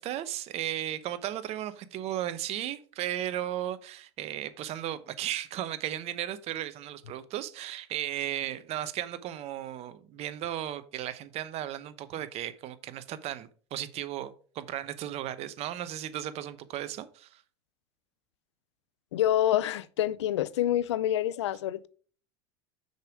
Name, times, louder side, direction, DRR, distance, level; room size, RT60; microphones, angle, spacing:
voice 1, 0.0-17.4, right 12 dB, 45° right, 0.8 m, -35 dB
voice 2, 19.1-21.9, left 12 dB, 80° left, 0.5 m, -27 dB
6.6 x 5.0 x 4.8 m
hypercardioid pair, 90°, 14 cm